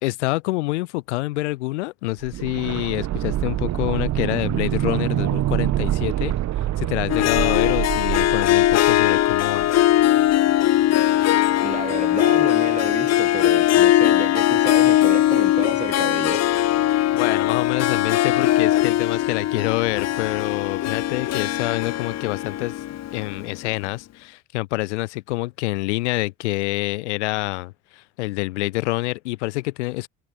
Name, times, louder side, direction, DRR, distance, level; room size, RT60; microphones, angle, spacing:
voice 1, 0.0-9.7 17.1-22.8 23.1-30.1, left 20 dB, 90° left, 0.9 m, -27 dB
sound 1, 2.2-10.0 10.3-10.4, right 13 dB, 55° right, 1.8 m, -26 dB
Harp, 7.1-23.6, left 13 dB, 50° left, 1.1 m, -20 dB
voice 2, 11.6-16.4, right 4 dB, 20° right, 2.9 m, -31 dB
hypercardioid pair, 75°, 34 cm